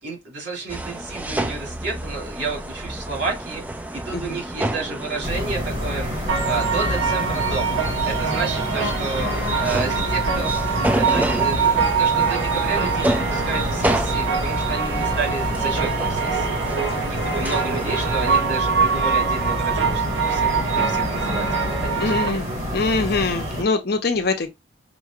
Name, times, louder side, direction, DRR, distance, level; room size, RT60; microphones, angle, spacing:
voice 1, 0.0-6.1 6.4-16.5 17.1-22.4, right 4 dB, 60° right, 2.7 m, -31 dB
sound 1, 0.7-18.4, right 1 dB, 10° right, 0.3 m, -30 dB
sound 2, 5.2-23.6, equal, 35° right, 1.5 m, -28 dB
sound 3, 6.3-22.3, right 6 dB, 85° right, 1.1 m, -24 dB
voice 2, 22.0-22.4 22.7-24.5, left 3 dB, 55° left, 0.7 m, -23 dB
5.2 x 3.0 x 2.4 m
head